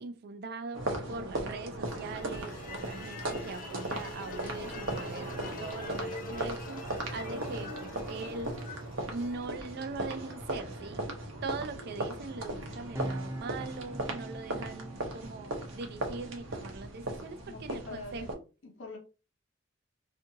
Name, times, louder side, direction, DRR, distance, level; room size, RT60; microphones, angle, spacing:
voice 1, 0.0-6.9 7.1-11.1 11.4-18.4, right 3 dB, 55° right, 0.4 m, -41 dB
sound 1, 0.7-18.3, right 1 dB, 85° right, 0.7 m, -38 dB
sound 2, 1.9-10.0, left 3 dB, 45° left, 0.4 m, -46 dB
voice 2, 5.2-5.7 17.4-18.3 18.6-19.0, left 2 dB, 75° left, 0.7 m, -45 dB
sound 3, 12.8-17.1, right 1 dB, 15° right, 0.7 m, -44 dB
2.7 x 2.5 x 2.6 m
head